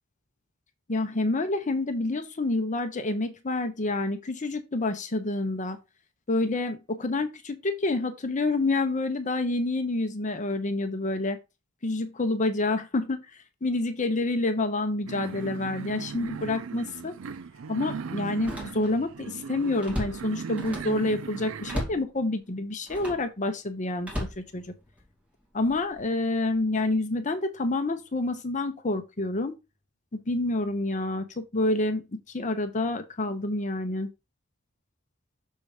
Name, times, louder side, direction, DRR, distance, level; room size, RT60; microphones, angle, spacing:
voice 1, 0.9-5.8 6.3-11.4 11.8-13.2 13.6-17.1 17.7-24.7 25.5-29.5 30.1-34.1, left 2 dB, 40° left, 0.8 m, -28 dB
sound 1, 15.1-21.8, right 6 dB, 80° right, 0.4 m, -38 dB
Slam, 16.2-16.4 16.9-17.0 18.3-19.1 19.5-21.0 21.7-22.1 22.8-23.3 24.0-25.1 25.7-26.0, left 1 dB, 5° right, 2.5 m, -36 dB
6.5 x 4.1 x 4.9 m
head